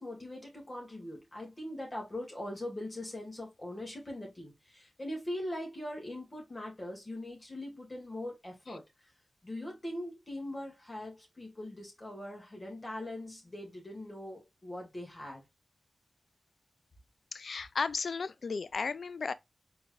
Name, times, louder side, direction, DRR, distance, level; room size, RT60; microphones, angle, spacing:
voice 1, 0.0-9.1 9.4-15.4, left 1 dB, 35° left, 2.1 m, -41 dB
voice 2, 17.3-19.3, left 4 dB, 70° left, 0.3 m, -34 dB
4.4 x 3.3 x 2.4 m
cardioid pair, 40°, 0 cm